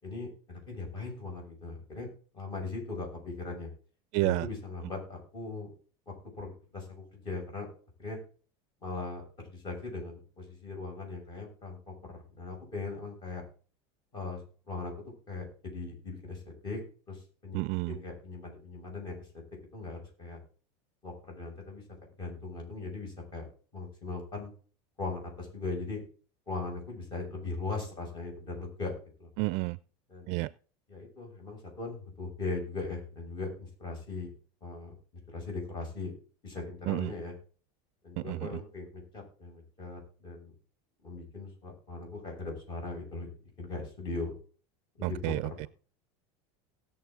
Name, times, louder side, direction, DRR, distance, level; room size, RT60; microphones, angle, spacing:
voice 1, 0.0-2.1 2.3-3.7 4.2-5.7 6.4-7.7 8.0-8.2 8.8-13.4 14.1-14.9 15.3-16.8 17.1-17.6 17.9-19.2 19.7-20.4 21.0-21.8 22.2-23.5 23.7-24.5 25.0-26.0 26.5-28.9 29.2-29.3 30.1-30.4 30.9-34.3 34.6-34.9 35.3-36.1 36.4-37.3 38.0-40.5 41.0-43.3 43.6-44.3 45.0-45.3, left 3 dB, 30° left, 1 dB, 6.5 m, -39 dB
voice 2, 4.1-4.5 17.5-18.0 29.4-29.8 30.3-30.5 36.9-37.1 38.2-38.5 45.0-45.7, right 22 dB, 55° right, 18 dB, 0.4 m, -30 dB
19.0 x 7.0 x 3.8 m, 0.40 s
supercardioid pair, 140°, 14 cm